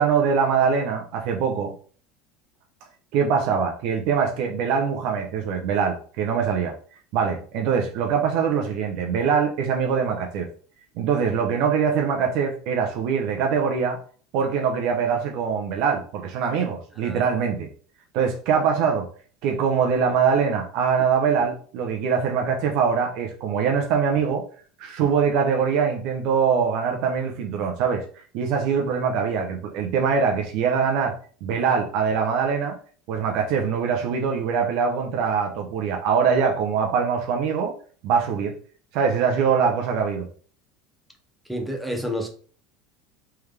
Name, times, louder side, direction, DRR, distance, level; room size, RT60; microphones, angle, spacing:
voice 1, 0.0-1.7 3.1-6.7 7.1-10.5 11.0-14.0 14.3-17.7 18.1-19.1 19.4-24.4 24.8-28.0 28.3-31.2 31.4-32.8 33.1-37.7 38.0-38.5 38.9-40.3, right 6 dB, 65° right, 0.7 m, -23 dB
voice 2, 41.5-42.3, equal, ahead, 0.9 m, -29 dB
3.5 x 3.4 x 3.3 m
supercardioid pair, 130°, 0 cm